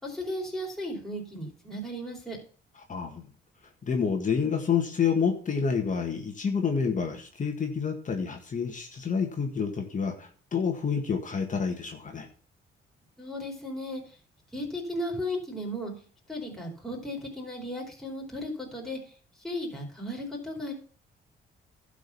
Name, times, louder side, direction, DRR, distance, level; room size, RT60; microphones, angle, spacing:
voice 1, 0.0-2.4 13.2-14.0 14.5-15.9 16.3-19.0 19.4-20.7, left 1 dB, ahead, -3 dB, 4.5 m, -35 dB
voice 2, 2.9-3.2 3.8-12.3, left 6 dB, 40° left, 3 dB, 1.8 m, -28 dB
11.5 x 5.1 x 7.1 m, 0.43 s
cardioid pair, 90°, 20 cm